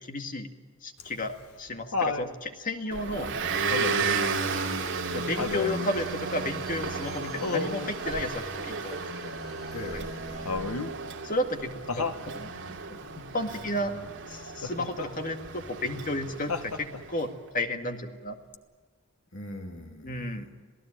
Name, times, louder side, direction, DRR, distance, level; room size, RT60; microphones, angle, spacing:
voice 1, 0.1-0.5 0.8-3.3 4.1-4.3 5.1-9.3 9.9-10.0 11.2-13.0 13.3-13.9 14.3-18.4 20.0-20.5, left 1 dB, 40° left, 5 dB, 2.0 m, -33 dB
Laughter, 1.0-2.3 3.7-4.2 5.4-5.8 7.4-7.9 10.5-11.0 11.9-12.3 14.6-15.1 16.5-17.1 18.5-18.6, left 4 dB, 80° left, 1.3 m, -31 dB
Motor vehicle (road) / Engine, 2.9-17.1, right 4 dB, 55° right, 3.0 m, -34 dB
voice 2, 3.8-4.2 9.3-9.4 9.7-10.6 13.6-14.1 19.3-20.5, left 1 dB, 55° left, 2 dB, 2.8 m, -42 dB
Bowed string instrument, 4.4-10.0 10.3-10.4, equal, ahead, 5.9 m, -52 dB
27.5 x 17.0 x 9.0 m, 1.4 s
head